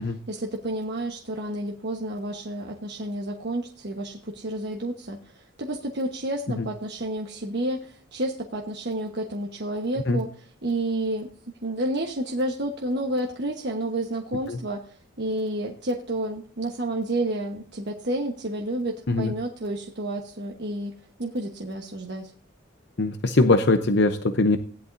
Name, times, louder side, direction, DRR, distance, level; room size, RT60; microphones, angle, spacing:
voice 1, 0.0-11.3 11.6-20.9 21.2-22.3, right 1 dB, 50° right, 1 dB, 1.2 m, -30 dB
voice 2, 23.0-24.6, left 2 dB, 55° left, 8 dB, 0.7 m, -21 dB
17.0 x 11.0 x 2.6 m, 0.43 s
head